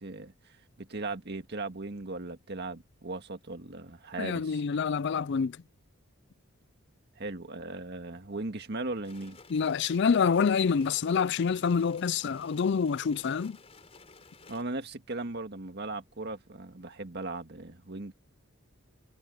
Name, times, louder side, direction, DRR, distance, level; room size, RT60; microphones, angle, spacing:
voice 1, 0.0-4.6 7.2-9.4 14.5-18.1, right 2 dB, 55° right, 1.8 m, -38 dB
voice 2, 4.2-5.6 9.5-13.6, left 6 dB, 55° left, 0.4 m, -27 dB
sound 1, 9.0-14.6, left 4 dB, 30° left, 4.0 m, -54 dB
head